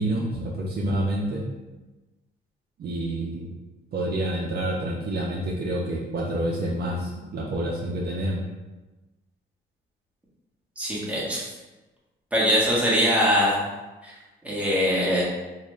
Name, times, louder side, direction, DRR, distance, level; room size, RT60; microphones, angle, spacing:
voice 1, 0.0-1.4 2.8-3.5 3.9-8.4, right 1 dB, 55° right, -3 dB, 0.6 m, -28 dB
voice 2, 10.8-11.5 12.3-13.6 14.0-14.1 14.4-15.2, equal, 5° right, -6 dB, 1.3 m, -22 dB
3.3 x 2.4 x 3.2 m, 1.1 s
cardioid pair, 90°, 20 cm